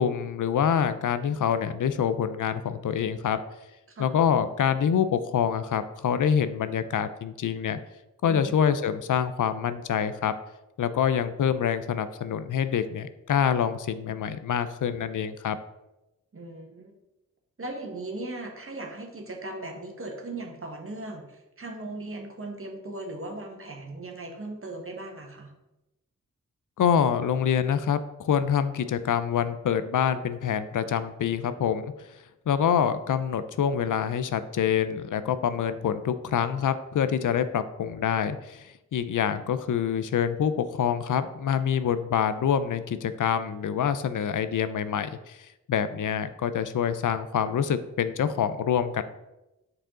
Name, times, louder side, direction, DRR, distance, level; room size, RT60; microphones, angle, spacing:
voice 1, 0.0-3.4 4.0-7.8 8.2-10.3 10.8-15.6 26.8-31.9 32.5-45.4 45.7-49.0, left 8 dB, 75° left, 12 dB, 0.5 m, -26 dB
voice 2, 16.3-16.9 17.6-25.5, right 2 dB, 45° right, 2 dB, 1.4 m, -38 dB
7.4 x 4.8 x 3.8 m, 0.95 s
cardioid pair, 70°, 31 cm